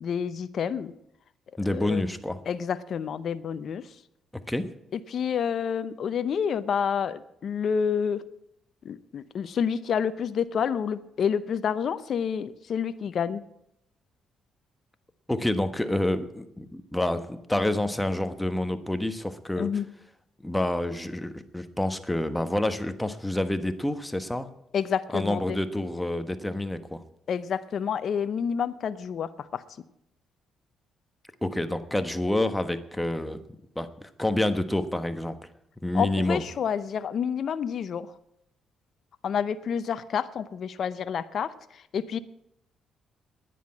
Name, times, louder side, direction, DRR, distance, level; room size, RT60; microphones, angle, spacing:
voice 1, 0.0-0.9 1.5-2.0 2.5-4.0 4.9-8.2 8.8-13.4 19.6-19.9 24.7-25.6 27.3-29.6 35.9-38.1 39.2-42.2, left 7 dB, 60° left, 13 dB, 0.7 m, -29 dB
voice 2, 1.6-2.4 4.5-4.7 15.3-19.7 20.4-24.5 25.1-27.0 31.4-33.4 33.7-35.4 35.8-36.4, left 1 dB, 5° left, 9 dB, 1.3 m, -28 dB
10.0 x 10.0 x 8.7 m, 0.79 s
cardioid pair, 80°, 0 cm